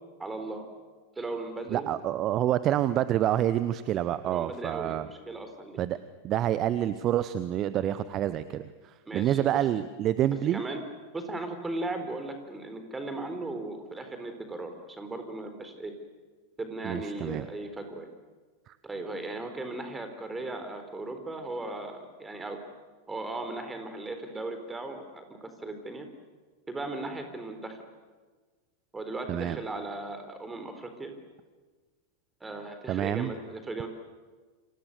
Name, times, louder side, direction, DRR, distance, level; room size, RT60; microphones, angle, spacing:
voice 1, 0.2-0.7 1.2-1.9 4.3-5.8 9.1-9.6 10.5-10.8 11.1-15.9 16.6-18.1 18.8-22.6 23.1-26.1 26.7-27.8 28.9-31.1 32.4-33.9, right 2 dB, 10° right, 7 dB, 4.2 m, -37 dB
voice 2, 1.7-5.1 5.8-6.0 6.2-10.6 16.8-17.5 18.7-18.8 29.3-29.6 32.9-33.3, right 12 dB, 35° right, 15 dB, 0.9 m, -27 dB
29.5 x 26.5 x 6.9 m, 1.4 s
figure-of-eight pair, 90°, 0 cm